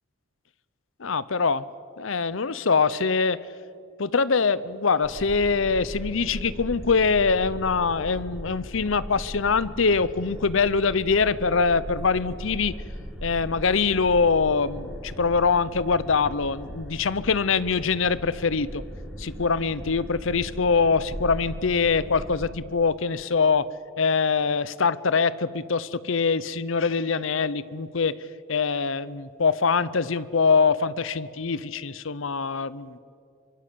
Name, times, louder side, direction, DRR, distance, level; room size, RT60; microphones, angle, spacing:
voice 1, 1.0-1.6 2.0-3.4 4.0-12.7 13.2-18.8 19.2-23.7 24.0-28.1 28.5-33.0, left 5 dB, 65° left, 17 dB, 0.8 m, -23 dB
sound 1, 5.0-22.5, equal, ahead, 3.9 m, -38 dB
26.0 x 23.0 x 8.6 m, 2.3 s
head